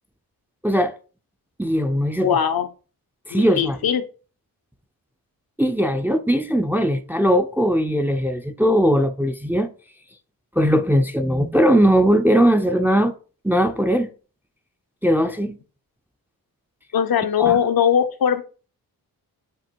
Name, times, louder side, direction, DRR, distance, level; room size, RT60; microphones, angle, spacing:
voice 1, 0.6-1.0 1.6-2.3 3.3-3.8 5.6-9.7 10.6-13.1 13.4-14.1 15.0-15.6 17.4-17.6, equal, 5° right, 0.4 m, -19 dB
voice 2, 2.2-2.7 3.3-4.0 16.9-18.4, left 8 dB, 70° left, 0.8 m, -20 dB
7.6 x 2.9 x 4.5 m
wide cardioid pair, 130°, 37 cm